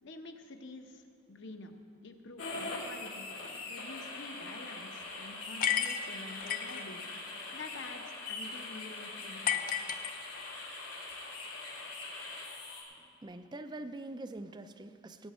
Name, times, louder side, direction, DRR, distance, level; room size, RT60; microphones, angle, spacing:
voice 1, 0.0-1.7 2.0-3.3 3.7-7.1 7.5-9.7, left 2 dB, 55° left, 5 dB, 0.9 m, -48 dB
sound 1, 2.4-12.8, left 3 dB, 85° left, 3.4 m, -42 dB
sound 2, 5.6-6.8 9.5-10.6, left 9 dB, 40° left, 0.5 m, -32 dB
voice 2, 13.0-15.3, right 2 dB, 20° right, 10 dB, 0.4 m, -44 dB
18.5 x 9.4 x 4.3 m, 2.6 s
head